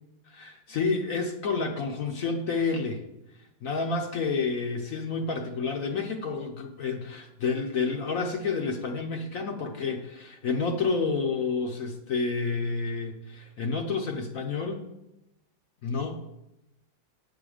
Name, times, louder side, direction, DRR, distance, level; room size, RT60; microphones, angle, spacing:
voice 1, 0.3-3.0 3.6-14.8 15.8-16.2, left 4 dB, 55° left, 3 dB, 1.1 m, -29 dB
9.5 x 6.3 x 5.0 m, 0.90 s
omnidirectional pair, 2.0 m